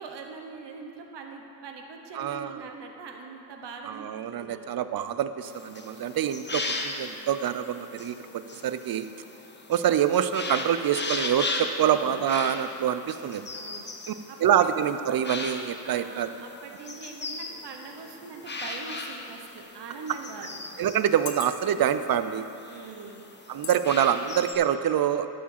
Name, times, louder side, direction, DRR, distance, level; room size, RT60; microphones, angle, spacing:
voice 1, 0.0-4.0 4.3-4.6 11.8-12.3 13.5-13.9 14.3-14.4 15.8-20.6 22.7-23.3, right 4 dB, 85° right, 3 dB, 1.1 m, -42 dB
voice 2, 2.1-2.7 3.9-9.1 9.7-13.5 14.1-14.2 14.4-16.3 20.8-22.5 23.5-25.3, right 9 dB, 60° right, 12 dB, 0.5 m, -26 dB
sound 1, 5.4-24.5, left 3 dB, 25° left, 0.9 m, -38 dB
sound 2, 19.1-19.3 20.1-20.2 21.0-21.9 22.6-22.8 23.6-23.9 24.3-24.4, left 7 dB, 60° left, 0.9 m, -38 dB
11.0 x 5.1 x 7.2 m, 2.9 s
cardioid pair, 95°, 41 cm